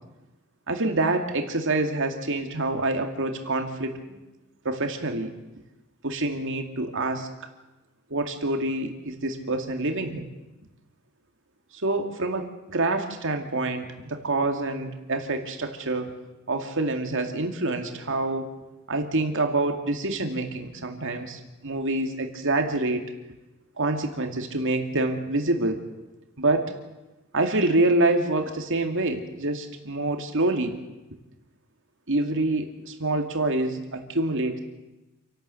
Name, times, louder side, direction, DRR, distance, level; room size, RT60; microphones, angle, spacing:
voice 1, 0.7-4.2 4.6-5.3 6.0-7.3 8.1-10.3 11.7-16.1 16.5-18.5 18.9-23.0 23.8-25.8 26.4-26.7 27.3-30.8 32.1-34.6, right 2 dB, 60° right, 5 dB, 2.4 m, -26 dB
28.0 x 12.0 x 7.9 m, 1.0 s
head